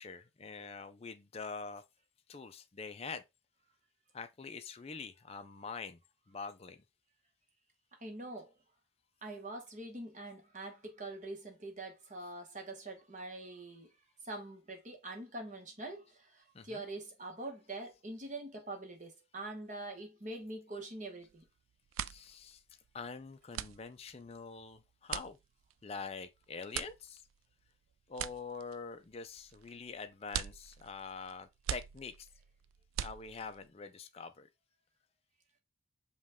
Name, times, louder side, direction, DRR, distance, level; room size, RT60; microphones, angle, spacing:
voice 1, 0.0-1.8 2.3-3.2 4.1-6.0 6.3-6.8 16.5-16.8 22.0-22.6 22.9-25.4 25.8-27.2 28.1-32.3 33.0-34.5, left 4 dB, 30° left, 0.4 m, -45 dB
voice 2, 8.0-8.5 9.2-13.9 14.2-21.4, right 2 dB, 35° right, 1.0 m, -44 dB
sound 1, 21.2-21.5 21.8-33.7, right 11 dB, 85° right, 0.3 m, -43 dB
5.2 x 2.3 x 3.5 m
head